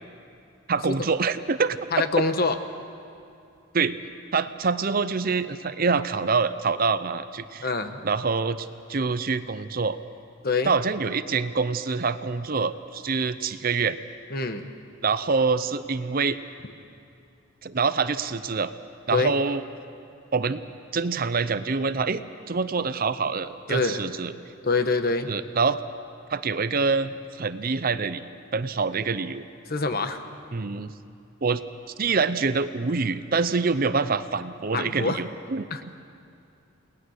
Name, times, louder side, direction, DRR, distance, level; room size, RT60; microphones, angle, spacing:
voice 1, 0.7-2.1 3.7-4.0 4.3-7.7 8.0-10.0 10.6-14.0 15.0-16.4 17.6-18.7 19.1-19.6 20.3-20.6 20.9-24.3 25.3-25.8 26.3-28.3 28.5-29.4 30.5-30.9 31.4-31.6 32.0-35.7, right 4 dB, 45° right, 13 dB, 0.6 m, -25 dB
voice 2, 1.9-2.6 7.6-8.0 10.4-10.7 14.3-14.7 19.1-19.3 23.7-24.0 24.6-25.3 29.7-30.2 34.7-35.2 35.7-35.8, left 3 dB, 45° left, 8 dB, 1.2 m, -25 dB
29.5 x 19.5 x 6.5 m, 2.5 s
head